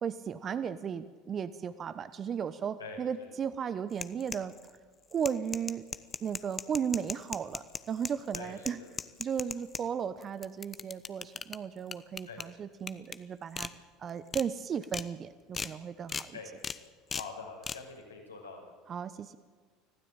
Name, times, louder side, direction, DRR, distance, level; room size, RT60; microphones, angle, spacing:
voice 1, 0.0-4.5 5.1-5.8 6.2-8.8 9.2-13.7 14.0-16.3 18.9-19.4, right 7 dB, 35° right, 13 dB, 1.0 m, -35 dB
voice 2, 2.8-3.3 8.3-8.9 12.3-12.4 16.3-16.5 17.1-18.7, left 4 dB, 90° left, -1 dB, 6.2 m, -45 dB
sound 1, 3.9-4.7 5.1-9.8 10.2-11.6 11.9-12.4 12.9-13.2 13.6-13.7 14.1-14.4 14.8-15.1 15.5-15.7 16.1-16.3 16.6-16.8 17.1-17.3 17.6-17.8, left 6 dB, 30° left, 1.0 m, -37 dB
25.0 x 16.0 x 8.9 m, 1.5 s
hypercardioid pair, 70°, 0 cm